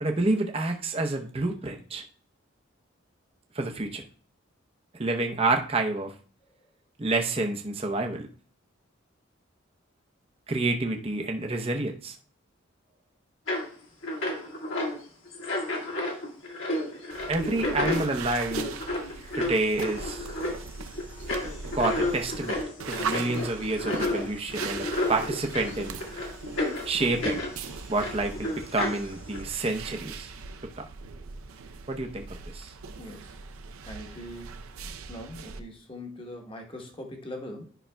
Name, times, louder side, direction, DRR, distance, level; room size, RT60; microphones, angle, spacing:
voice 1, 0.0-2.0 3.5-4.0 5.0-6.1 7.0-8.3 10.5-12.2 17.3-18.7 19.3-20.3 21.7-22.6 22.9-26.0 26.9-27.4 27.9-30.3 30.8-30.9 31.9-32.2 32.5-32.7, right 2 dB, 30° right, 4 dB, 0.6 m, -28 dB
sound 1, 13.5-13.7 14.0-15.0 15.3-27.6 28.0-29.4, left 1 dB, 65° left, 1.6 m, -31 dB
sound 2, 17.1-35.6, right 5 dB, 90° right, 0.6 m, -40 dB
voice 2, 33.0-33.4 33.8-34.5 35.1-37.7, left 1 dB, 25° left, 3 dB, 1.0 m, -41 dB
11.5 x 5.6 x 2.2 m, 0.42 s
head